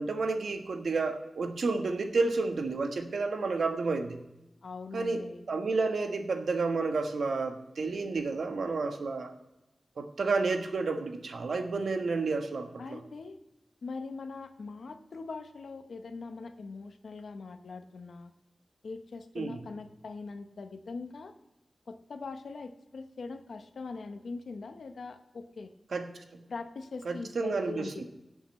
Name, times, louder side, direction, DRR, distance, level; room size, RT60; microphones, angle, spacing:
voice 1, 0.0-4.2 4.9-5.2 5.5-9.3 10.0-13.0 19.3-19.6 25.9-26.4 27.0-28.0, right 3 dB, 85° right, 5 dB, 1.3 m, -31 dB
voice 2, 4.6-5.5 12.8-13.4 13.8-18.3 18.8-21.3 21.9-25.7 26.5-28.0, left 4 dB, 80° left, 8 dB, 1.0 m, -42 dB
18.0 x 7.9 x 3.2 m, 0.95 s
wide cardioid pair, 105°, 0 cm